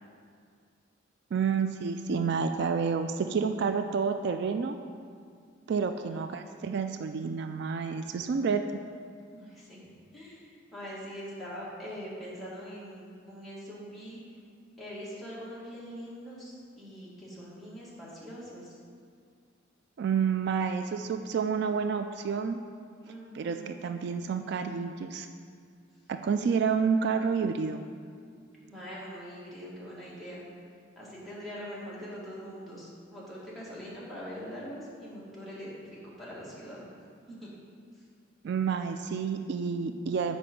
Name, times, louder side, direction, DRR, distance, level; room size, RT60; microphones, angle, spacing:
voice 1, 1.3-4.8 5.7-8.6 20.0-22.6 23.3-25.3 26.1-27.8 38.4-40.4, right 6 dB, 60° right, 8 dB, 0.3 m, -29 dB
voice 2, 9.3-9.8 10.1-14.2 14.8-18.7 23.0-23.7 28.6-30.4 31.0-36.9 37.3-37.5 37.9-38.0, equal, ahead, -9 dB, 1.9 m, -43 dB
7.6 x 5.1 x 5.3 m, 2.2 s
head